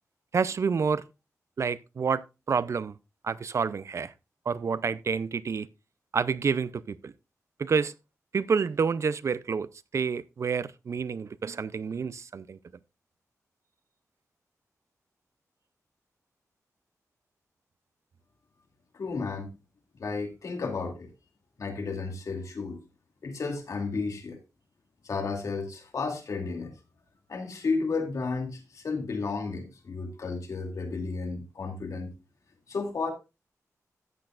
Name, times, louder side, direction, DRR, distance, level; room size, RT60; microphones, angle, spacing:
voice 1, 0.3-1.0 1.6-2.9 3.2-4.1 4.5-5.7 6.1-7.1 7.6-7.9 8.3-9.7 9.9-12.6, right 5 dB, 55° right, 0.5 m, -28 dB
voice 2, 18.9-19.5 20.0-21.1 21.6-22.8 23.2-24.4 25.0-26.7 27.3-32.1 32.7-33.1, left 4 dB, 65° left, 2.5 m, -32 dB
13.5 x 8.8 x 2.4 m
wide cardioid pair, 110°, 6 cm